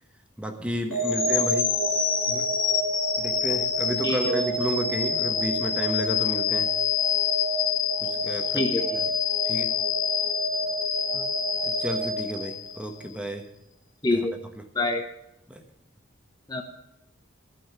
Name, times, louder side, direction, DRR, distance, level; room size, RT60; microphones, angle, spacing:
voice 1, 0.4-1.7 2.3-2.5 3.2-6.7 8.0-8.6 9.4-9.7 11.6-13.5 14.1-14.2 15.5-15.6, equal, 5° right, 5 dB, 1.2 m, -32 dB
sound 1, 0.9-13.0, left 4 dB, 85° left, 2.5 m, -26 dB
voice 2, 4.0-4.4 8.5-9.0 11.1-11.3 14.0-14.4 14.7-15.0 16.5-16.6, left 2 dB, 20° left, 3 dB, 0.8 m, -26 dB
14.5 x 5.7 x 9.0 m, 0.85 s
head